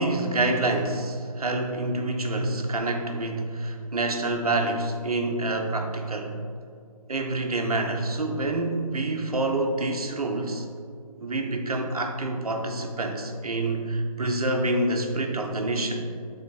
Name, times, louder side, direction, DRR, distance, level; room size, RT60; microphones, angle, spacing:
voice 1, 0.0-6.4 7.1-10.6 11.2-16.1, right 2 dB, 70° right, 4 dB, 0.9 m, -27 dB
7.3 x 3.9 x 3.9 m, 2.2 s
figure-of-eight pair, 155°, 20 cm